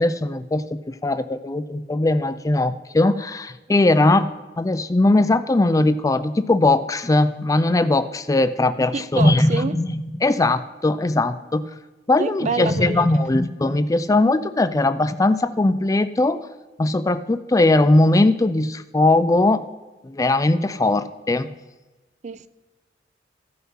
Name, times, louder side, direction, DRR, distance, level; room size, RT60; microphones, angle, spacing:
voice 1, 0.0-4.3 4.6-11.6 12.1-16.5 16.8-19.6 20.0-21.5, left 2 dB, 20° left, 12 dB, 0.4 m, -19 dB
voice 2, 8.9-9.8 12.2-13.1 22.2-22.5, right 4 dB, 40° right, 14 dB, 0.4 m, -27 dB
14.0 x 5.7 x 5.5 m, 1.2 s
head